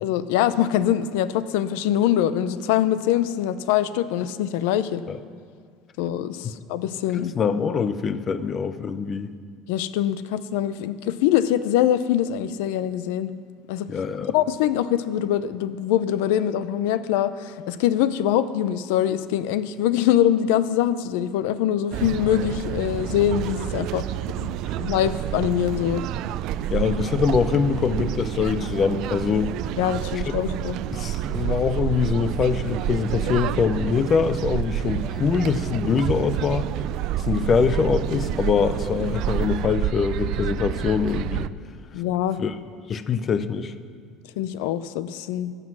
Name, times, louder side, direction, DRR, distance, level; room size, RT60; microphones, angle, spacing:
voice 1, 0.0-5.0 6.0-7.3 9.7-13.3 13.7-13.9 14.3-24.1 24.4-26.0 29.8-30.8 41.9-42.4 44.4-45.5, left 11 dB, 85° left, 14 dB, 0.5 m, -23 dB
voice 2, 7.1-9.3 13.9-14.3 24.7-24.8 26.7-29.5 30.1-30.2 30.9-36.7 37.2-41.5 42.4-42.6 42.9-43.7, left 6 dB, 35° left, 13 dB, 0.6 m, -24 dB
sound 1, 21.9-41.5, right 11 dB, 60° right, 0.3 m, -28 dB
13.5 x 7.7 x 6.2 m, 2.1 s
cardioid pair, 135°, 0 cm